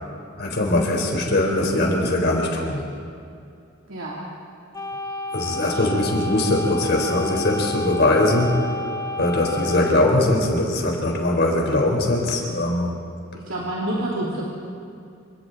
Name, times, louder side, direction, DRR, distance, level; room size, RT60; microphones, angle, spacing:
voice 1, 0.4-2.8 5.3-8.6 9.2-12.9, left 1 dB, 60° left, 0 dB, 4.4 m, -21 dB
voice 2, 3.9-4.2 5.6-6.1 13.3-14.5, right 1 dB, 80° right, -5 dB, 3.1 m, -29 dB
sound 1, 4.7-10.0, left 2 dB, 20° left, 0.8 m, -31 dB
28.0 x 27.0 x 4.1 m, 2.5 s
head